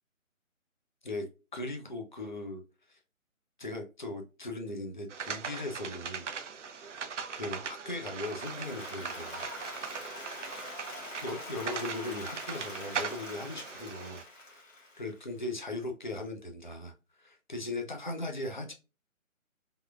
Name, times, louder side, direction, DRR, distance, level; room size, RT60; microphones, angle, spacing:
voice 1, 1.5-2.6 2.9-3.0 3.6-6.3 7.3-9.5 11.2-16.9 17.2-18.7, left 2 dB, 35° left, 0.5 m, -38 dB
sound 1, 5.1-14.2, right 6 dB, 60° right, 0.5 m, -40 dB
Applause, 8.1-15.3, left 2 dB, 60° left, 1.4 m, -45 dB
3.5 x 2.2 x 2.2 m
figure-of-eight pair, 155°, 42 cm